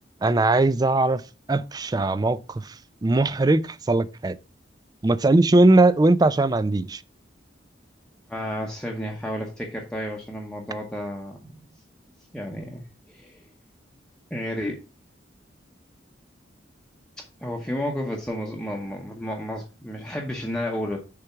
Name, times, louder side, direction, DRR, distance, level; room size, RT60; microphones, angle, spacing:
voice 1, 0.2-1.2 1.5-2.7 3.0-4.4 5.0-7.0, right 2 dB, 20° right, 0.4 m, -20 dB
voice 2, 8.3-11.6 12.3-13.4 14.3-14.8 17.2-21.0, equal, 5° left, 0.9 m, -32 dB
6.8 x 3.5 x 5.7 m
head